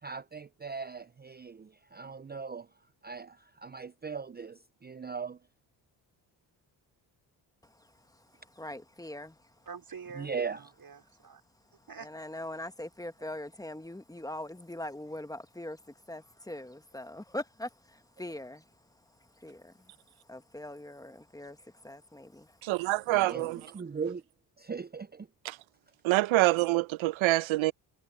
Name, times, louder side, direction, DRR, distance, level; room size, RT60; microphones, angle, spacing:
voice 1, 0.0-5.4 10.2-10.7 23.1-24.2 24.6-25.3, right 5 dB, 20° right, 0.7 m, -39 dB
voice 2, 8.6-9.4 12.0-18.6 19.4-19.7 20.3-22.6, left 1 dB, 5° left, 1.8 m, -42 dB
voice 3, 9.7-11.4 11.9-12.1 26.1-26.2, right 6 dB, 45° right, 5.2 m, -46 dB
voice 4, 22.6-23.6 25.4-25.6 26.0-27.7, right 18 dB, 75° right, 0.9 m, -26 dB
supercardioid pair, 55°, 48 cm